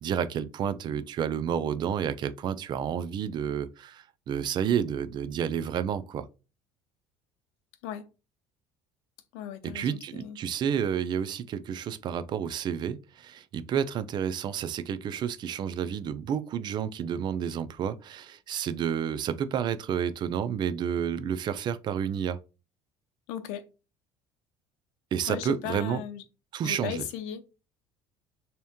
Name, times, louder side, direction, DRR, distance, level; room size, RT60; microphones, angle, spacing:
voice 1, 0.0-6.3 9.6-22.4 25.1-26.0 26.5-27.0, right 8 dB, 40° right, 0.4 m, -30 dB
voice 2, 9.3-10.4 23.3-23.6 25.3-26.2 26.6-27.5, left 10 dB, 90° left, 0.6 m, -37 dB
3.5 x 2.9 x 3.5 m
cardioid pair, 125°, 11 cm